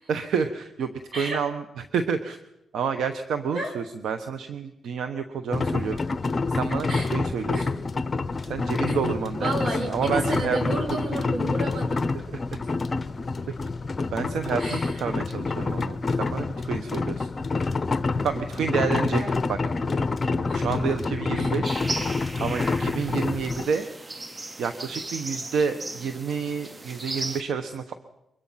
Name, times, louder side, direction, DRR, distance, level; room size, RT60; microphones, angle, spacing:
voice 1, 0.1-2.4 2.7-6.0 6.5-7.8 8.4-11.0 12.1-12.4 13.5-13.6 14.1-17.3 18.2-19.2 19.5-19.6 20.5-23.9 24.6-27.9, right 6 dB, 75° right, 8 dB, 1.2 m, -29 dB
sound 1, 5.5-23.7, left 3 dB, 35° left, 0.9 m, -27 dB
voice 2, 9.4-12.1 14.6-14.9 19.1-19.3 20.3-20.7 21.3-21.5, right 1 dB, 50° right, 4 dB, 6.2 m, -31 dB
sound 2, 21.6-27.4, right 2 dB, 25° right, 0.9 m, -36 dB
24.0 x 21.5 x 5.8 m, 0.88 s
cardioid pair, 85°, 0 cm